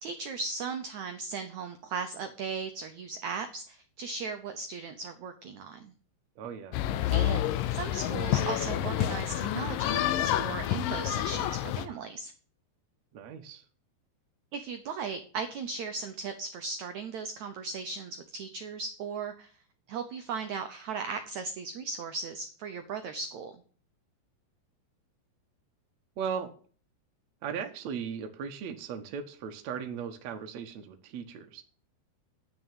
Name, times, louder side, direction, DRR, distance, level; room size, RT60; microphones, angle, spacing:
voice 1, 0.0-5.9 7.1-7.4 7.7-12.3 14.5-19.5 19.9-23.5, right 5 dB, 80° right, 8 dB, 1.6 m, -37 dB
voice 2, 6.4-6.8 7.1-7.4 13.1-13.6 26.2-26.5 27.4-31.6, right 7 dB, 65° right, 5 dB, 1.8 m, -37 dB
sound 1, 6.7-11.9, left 12 dB, 80° left, 2.0 m, -29 dB
10.5 x 6.4 x 9.0 m, 0.42 s
omnidirectional pair, 4.7 m